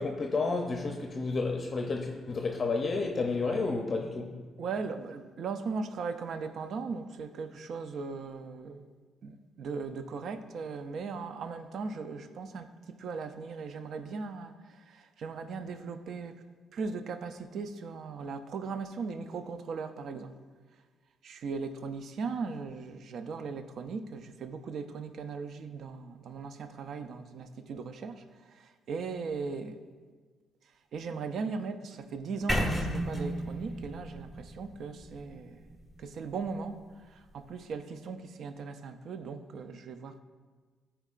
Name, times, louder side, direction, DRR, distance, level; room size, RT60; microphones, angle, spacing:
voice 1, 0.0-4.3, left 3 dB, 35° left, 0.6 m, -31 dB
voice 2, 4.6-8.9 9.2-16.3 16.7-20.3 21.2-29.8 30.9-35.6 36.0-40.2, right 4 dB, 65° right, 0.4 m, -38 dB
sound 1, 32.5-36.5, equal, 10° right, 1.1 m, -34 dB
13.5 x 4.5 x 2.5 m
cardioid pair, 90°, 0 cm